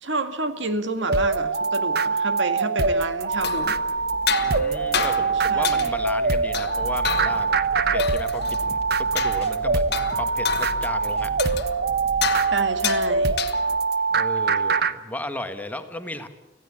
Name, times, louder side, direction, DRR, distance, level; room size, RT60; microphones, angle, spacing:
voice 1, 0.0-3.8 5.5-5.9 12.5-13.4, right 2 dB, 75° right, 9 dB, 1.8 m, -29 dB
sound 1, 1.1-14.9, right 4 dB, 55° right, 0.9 m, -23 dB
sound 2, 3.2-13.9, left 7 dB, 60° left, 1.3 m, -31 dB
voice 2, 4.4-11.3 14.1-16.3, left 1 dB, 10° left, 7 dB, 1.4 m, -35 dB
sound 3, 6.7-12.4, left 1 dB, 35° left, 1.7 m, -39 dB
25.5 x 16.0 x 8.6 m, 1.1 s
head